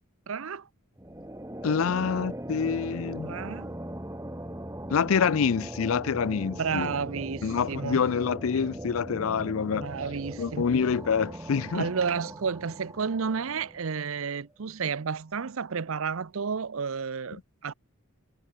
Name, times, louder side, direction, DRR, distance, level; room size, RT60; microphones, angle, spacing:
voice 1, 0.3-0.7 3.2-3.7 6.6-8.0 9.7-10.7 11.7-17.7, right 5 dB, 70° right, 0.6 m, -31 dB
sound 1, 1.0-14.1, right 1 dB, 15° right, 3.4 m, -39 dB
voice 2, 1.6-3.3 4.9-6.9 7.4-9.9 10.4-11.9, left 6 dB, 70° left, 0.5 m, -26 dB
head